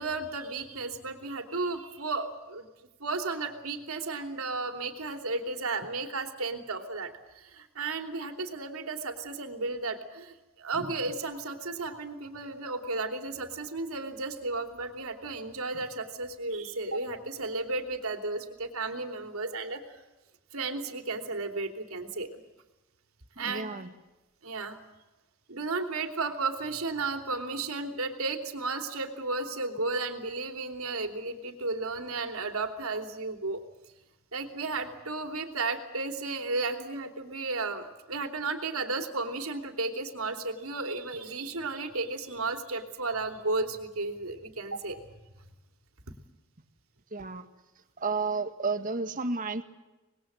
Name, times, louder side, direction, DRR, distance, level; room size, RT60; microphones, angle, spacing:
voice 1, 0.0-2.7 3.0-19.8 20.5-22.3 23.4-23.7 24.4-24.8 25.5-33.6 34.3-45.0, right 3 dB, 90° right, 6 dB, 3.1 m, -34 dB
voice 2, 23.4-23.9 47.1-47.5 48.0-49.6, right 4 dB, 40° right, 8 dB, 1.8 m, -32 dB
26.0 x 20.5 x 7.8 m, 1.1 s
head